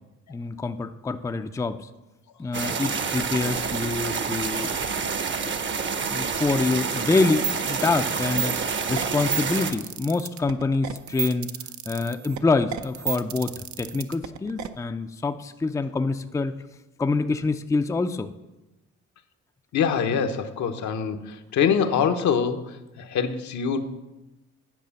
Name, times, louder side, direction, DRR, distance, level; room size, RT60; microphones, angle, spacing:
voice 1, 0.3-1.8 2.4-4.8 5.4-5.5 6.1-11.5 11.9-16.5 17.0-18.3, left 3 dB, 10° left, 9 dB, 0.4 m, -26 dB
sound 1, 2.5-9.7, right 5 dB, 40° right, 0.8 m, -28 dB
sound 2, 7.2-14.7, right 8 dB, 70° right, 0.6 m, -32 dB
voice 2, 19.7-22.6 23.0-23.8, left 7 dB, 70° left, 7 dB, 0.9 m, -24 dB
9.3 x 4.9 x 7.0 m, 1.0 s
cardioid pair, 90°, 30 cm